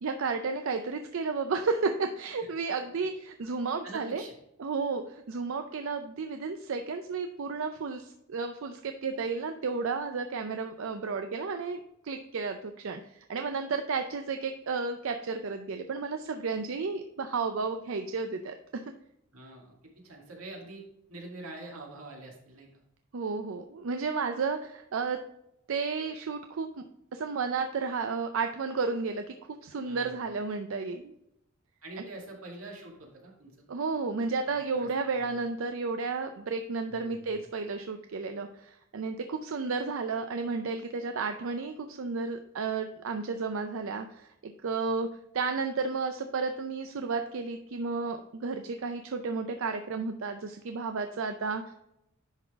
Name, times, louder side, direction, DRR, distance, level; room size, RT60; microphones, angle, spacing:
voice 1, 0.0-4.2 4.6-18.8 23.1-25.2 25.7-26.8 27.1-29.2 29.6-31.1 32.0-32.1 33.7-45.1 45.3-51.7, right 4 dB, 65° right, 7 dB, 0.5 m, -32 dB
voice 2, 3.8-4.3 19.3-20.8 21.1-22.7 29.8-30.2 31.8-33.7 34.5-35.4 36.9-37.4, right 2 dB, 85° right, -1 dB, 2.1 m, -45 dB
10.5 x 3.9 x 3.5 m, 0.80 s
head